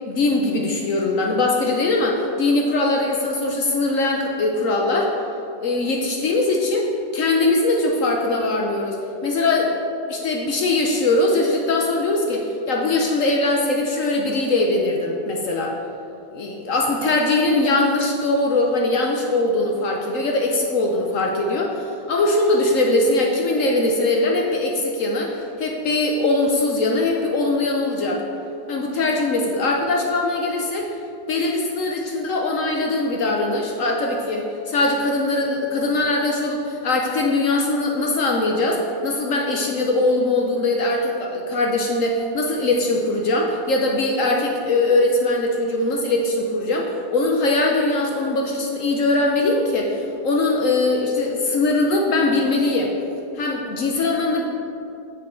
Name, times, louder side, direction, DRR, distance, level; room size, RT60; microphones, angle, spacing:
voice 1, 0.1-5.1 5.6-9.7 10.1-15.8 16.3-28.2 28.7-30.9 31.3-52.9 53.3-54.5, left 2 dB, 65° left, 0 dB, 0.8 m, -21 dB
6.7 x 6.4 x 4.3 m, 2.7 s
omnidirectional pair, 1.9 m